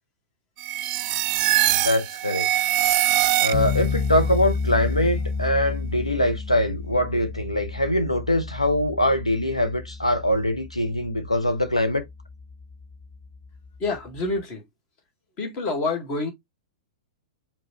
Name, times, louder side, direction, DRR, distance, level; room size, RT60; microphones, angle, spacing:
sound 1, 0.6-4.0, right 14 dB, 35° right, 0.3 m, -23 dB
voice 1, 1.7-2.5 3.4-12.0, left 1 dB, 85° left, 0.9 m, -23 dB
sound 2, 3.5-14.4, left 4 dB, 15° left, 0.6 m, -31 dB
voice 2, 13.8-14.6 15.4-16.3, left 3 dB, 35° left, 1.8 m, -27 dB
4.9 x 3.5 x 3.1 m
figure-of-eight pair, 100°, 3 cm